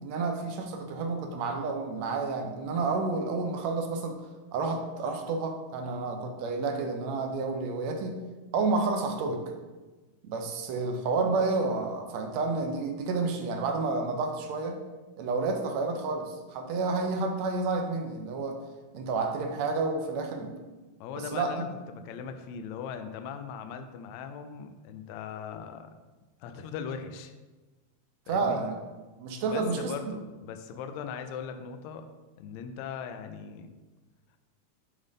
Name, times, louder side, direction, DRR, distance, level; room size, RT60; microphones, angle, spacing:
voice 1, 0.0-4.2 4.5-8.2 8.5-9.4 10.2-14.8 15.2-18.6 18.9-20.5 21.2-21.7 28.3-28.8 29.2-29.9, right 3 dB, 75° right, 4 dB, 1.9 m, -30 dB
voice 2, 21.0-25.9 26.4-27.3 28.3-28.6 29.5-32.1 32.4-33.7, left 6 dB, 80° left, 7 dB, 1.8 m, -39 dB
11.0 x 3.9 x 3.6 m, 1.2 s
omnidirectional pair, 3.4 m